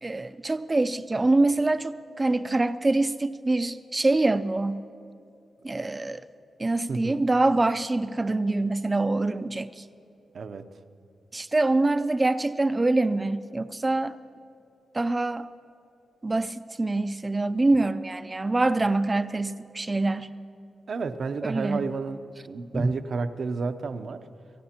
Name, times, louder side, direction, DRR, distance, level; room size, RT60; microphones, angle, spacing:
voice 1, 0.0-4.8 5.6-6.2 6.6-9.8 11.3-14.2 14.9-15.5 16.2-20.3 21.4-21.8 22.7-22.9, right 2 dB, 25° right, 13 dB, 0.4 m, -25 dB
voice 2, 6.9-7.2 10.3-10.7 20.9-24.2, right 4 dB, 60° right, 9 dB, 0.6 m, -31 dB
29.5 x 15.5 x 2.9 m, 2.6 s
wide cardioid pair, 105°, 0 cm